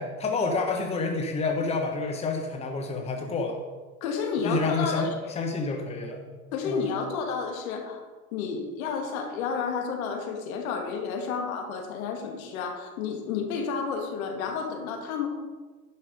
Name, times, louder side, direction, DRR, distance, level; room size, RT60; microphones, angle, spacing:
voice 1, 0.0-3.6 4.4-5.1 5.4-6.3 6.6-6.9, left 3 dB, 15° left, 2 dB, 1.1 m, -28 dB
voice 2, 4.0-5.4 6.5-8.0 8.3-15.3, left 5 dB, 60° left, 4 dB, 2.0 m, -31 dB
11.0 x 5.5 x 5.2 m, 1.3 s
hypercardioid pair, 110°, 46 cm